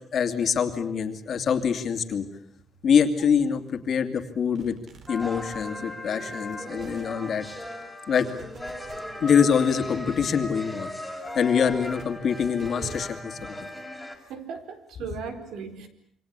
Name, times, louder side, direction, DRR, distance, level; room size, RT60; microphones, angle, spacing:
voice 1, 0.1-2.2 2.8-4.7 5.1-7.4 8.1-8.3 9.2-10.9 11.3-13.6, left 7 dB, 45° left, 7 dB, 2.6 m, -24 dB
sound 1, 4.5-7.9 8.3-10.6 11.1-13.5, right 5 dB, 45° right, 3.0 m, -48 dB
sound 2, 5.1-14.2, left 1 dB, ahead, 4.0 m, -37 dB
voice 2, 14.3-15.9, right 6 dB, 70° right, 8 dB, 4.3 m, -37 dB
28.0 x 25.0 x 8.2 m, 0.64 s
cardioid pair, 165°, 0 cm